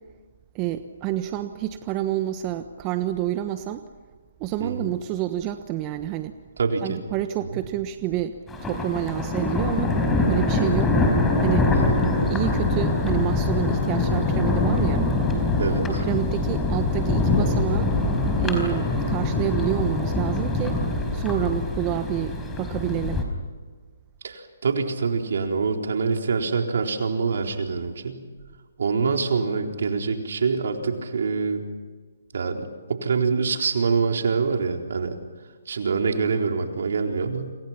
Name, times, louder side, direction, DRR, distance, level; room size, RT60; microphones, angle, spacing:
voice 1, 0.5-3.8 4.4-6.4 6.8-10.0 10.3-11.0 11.4-11.7 12.3-15.1 16.0-17.9 18.4-20.8 21.1-23.2, right 13 dB, 25° right, 9 dB, 1.1 m, -28 dB
voice 2, 6.6-7.0 7.5-7.6 11.7-11.9 15.6-15.8 24.2-28.2 28.8-31.6 32.3-35.2 35.7-37.6, right 5 dB, 65° right, 3 dB, 4.0 m, -25 dB
Thunder, 8.5-23.2, left 2 dB, 10° left, 4.6 m, -23 dB
30.0 x 27.0 x 5.9 m, 1.5 s
hypercardioid pair, 145°, 0 cm